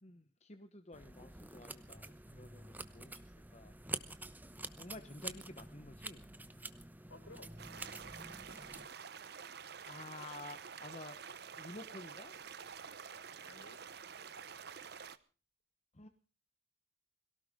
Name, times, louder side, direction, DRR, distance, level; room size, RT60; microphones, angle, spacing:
voice 1, 0.0-3.7 4.7-6.3 9.9-11.2 11.6-12.3 15.9-16.1, left 2 dB, 35° left, 7 dB, 1.1 m, -51 dB
sound 1, 0.9-8.9, right 2 dB, 10° right, 0.9 m, -48 dB
voice 2, 7.1-7.5 13.4-13.8, left 2 dB, 70° left, 8 dB, 5.0 m, -55 dB
sound 2, 7.6-15.2, right 6 dB, 50° right, 0.9 m, -49 dB
22.0 x 17.5 x 3.7 m, 0.38 s
head